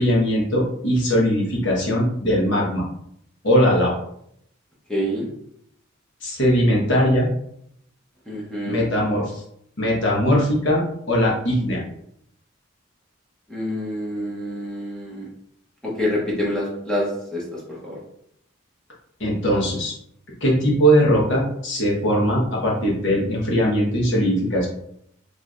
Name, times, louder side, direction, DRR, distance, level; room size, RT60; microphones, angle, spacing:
voice 1, 0.0-2.8 3.4-3.9 6.2-7.3 8.6-9.4 9.8-11.8 19.2-19.9 20.4-24.7, equal, 60° left, -3 dB, 1.2 m, -20 dB
voice 2, 4.9-5.3 8.3-8.9 13.5-15.3 15.9-17.4 17.8-18.0, equal, 5° left, -6 dB, 0.9 m, -26 dB
4.6 x 3.3 x 2.5 m, 0.72 s
head